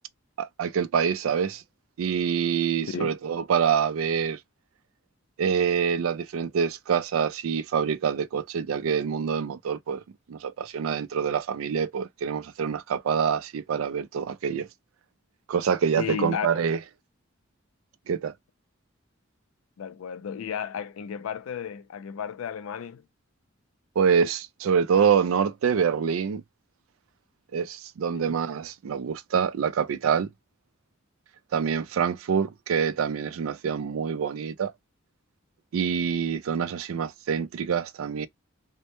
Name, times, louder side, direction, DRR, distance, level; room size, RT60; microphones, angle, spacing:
voice 1, 0.4-1.6 2.0-4.4 5.4-10.0 10.3-14.7 15.5-16.8 18.1-18.3 24.0-26.4 27.5-30.3 31.5-34.7 35.7-38.3, right 7 dB, 90° right, 0.4 m, -26 dB
voice 2, 16.0-16.5 19.8-23.0 28.1-28.3, left 7 dB, 85° left, 0.4 m, -33 dB
2.1 x 2.1 x 2.8 m
head